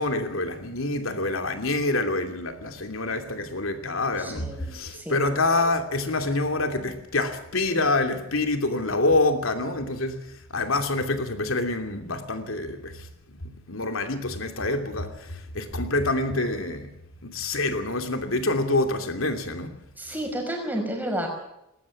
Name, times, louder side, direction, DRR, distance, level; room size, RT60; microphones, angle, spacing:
voice 1, 0.0-10.2 10.5-13.4 13.7-16.9 17.2-19.8, left 2 dB, 75° left, 2.8 m, -26 dB
voice 2, 4.2-5.4 20.0-21.3, right 1 dB, 10° right, 5.5 m, -31 dB
20.0 x 18.5 x 7.3 m
head